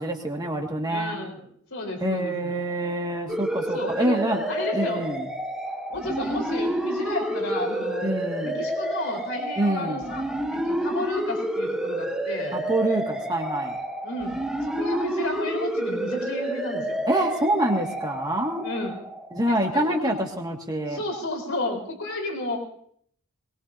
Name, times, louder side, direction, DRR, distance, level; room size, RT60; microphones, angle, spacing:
voice 1, 0.0-1.2 2.0-4.4 4.7-5.2 8.0-8.6 9.6-10.0 12.5-13.8 17.1-18.7 19.3-21.0, right 1 dB, 20° right, 1 dB, 2.0 m, -26 dB
voice 2, 0.9-1.4 1.7-2.6 3.7-4.2 4.5-5.0 5.9-8.1 8.4-10.2 10.5-12.5 14.0-14.4 14.6-17.0 18.6-19.0 19.5-20.1 20.9-22.6, left 1 dB, 65° left, 2 dB, 4.3 m, -32 dB
sound 1, 3.3-19.7, right 1 dB, 5° right, 1.1 m, -29 dB
21.5 x 21.5 x 2.8 m, 0.62 s
head